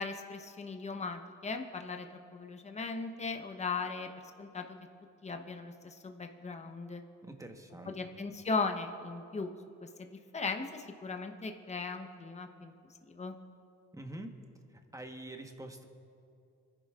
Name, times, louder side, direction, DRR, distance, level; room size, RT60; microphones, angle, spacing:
voice 1, 0.0-4.1 4.4-4.8 5.2-7.0 7.9-9.5 9.8-12.7 13.1-13.4, left 4 dB, 20° left, 5 dB, 0.9 m, -38 dB
voice 2, 7.2-8.1 13.9-14.4 14.7-15.9, right 1 dB, 10° right, 4 dB, 1.2 m, -46 dB
26.0 x 11.0 x 2.5 m, 2.5 s
cardioid pair, 90°, 30 cm